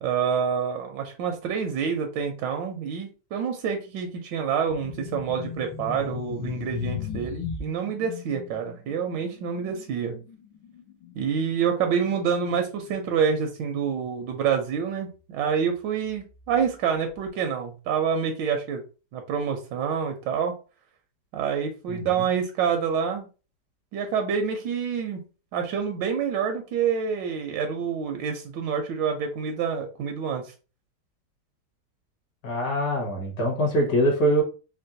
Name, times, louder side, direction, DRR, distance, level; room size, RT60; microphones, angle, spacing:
voice 1, 0.0-10.2 11.1-18.8 19.1-20.5 21.3-23.3 23.9-25.2 25.5-30.5, right 7 dB, 85° right, 5 dB, 1.3 m, -27 dB
sound 1, 4.7-14.7 14.9-15.2 15.9-17.0, left 7 dB, 80° left, 1.5 m, -38 dB
voice 2, 21.9-22.3 32.4-34.4, right 1 dB, 60° left, -1 dB, 1.9 m, -24 dB
4.4 x 2.1 x 2.6 m, 0.33 s
omnidirectional pair, 2.0 m